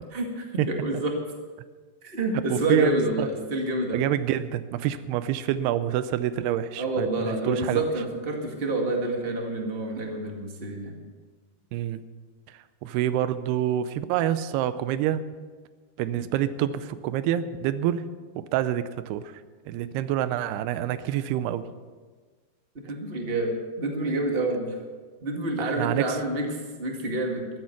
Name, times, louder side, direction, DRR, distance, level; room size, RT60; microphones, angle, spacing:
voice 1, 0.1-1.2 2.0-4.0 6.8-10.9 22.8-24.8 25.2-27.5, right 2 dB, 40° right, 1 dB, 0.8 m, -28 dB
voice 2, 2.5-3.3 3.9-7.8 11.7-12.0 12.8-15.2 16.0-18.0 18.4-19.3 19.7-21.6 25.6-26.2, right 11 dB, 80° right, 13 dB, 2.7 m, -27 dB
14.0 x 13.5 x 5.9 m, 1.4 s
omnidirectional pair, 4.8 m